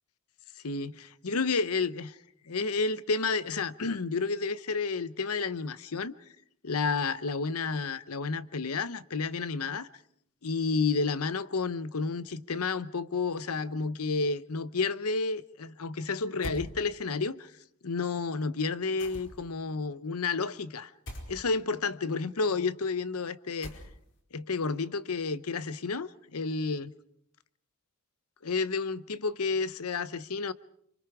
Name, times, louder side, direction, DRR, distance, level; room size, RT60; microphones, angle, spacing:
voice 1, 0.6-2.2 2.5-6.1 6.6-9.9 10.4-17.5 17.8-20.9 21.3-23.8 24.3-26.9 28.4-30.5, left 4 dB, 80° left, 0.9 m, -31 dB
sound 1, 16.4-16.7 19.0-19.5 21.1-21.3 23.6-24.2, equal, 60° left, 4.6 m, -40 dB
27.0 x 25.5 x 4.9 m
head